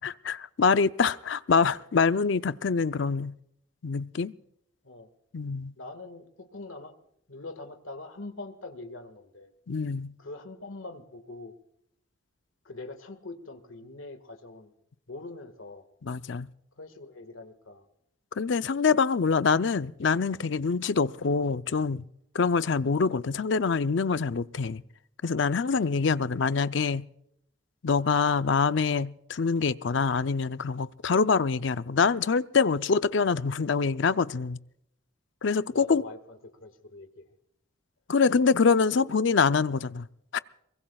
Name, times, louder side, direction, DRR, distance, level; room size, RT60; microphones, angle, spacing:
voice 1, 0.0-3.3 3.8-4.3 5.3-5.7 9.7-10.1 16.0-16.5 18.4-22.0 22.3-24.8 25.2-27.0 27.8-34.6 35.4-36.0 38.1-40.1 40.3-40.4, left 5 dB, 65° left, 0.5 m, -25 dB
voice 2, 5.8-7.0 7.3-9.5 10.2-11.5 12.6-14.7 15.1-15.8 16.8-17.9 25.7-25.9 35.7-37.2, left 2 dB, 80° left, 1.8 m, -43 dB
23.5 x 21.0 x 2.3 m
head